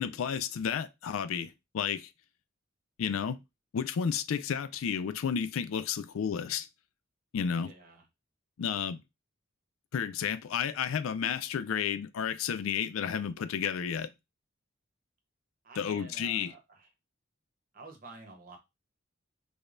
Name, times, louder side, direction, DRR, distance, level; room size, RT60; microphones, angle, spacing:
voice 1, 0.0-2.1 3.0-3.4 3.7-6.7 7.3-7.7 8.6-9.0 9.9-14.1 15.8-16.5, left 7 dB, 85° left, 0.4 m, -32 dB
voice 2, 7.5-8.0 15.6-16.9 17.7-18.6, right 3 dB, 45° right, 0.9 m, -50 dB
4.9 x 2.2 x 2.5 m
head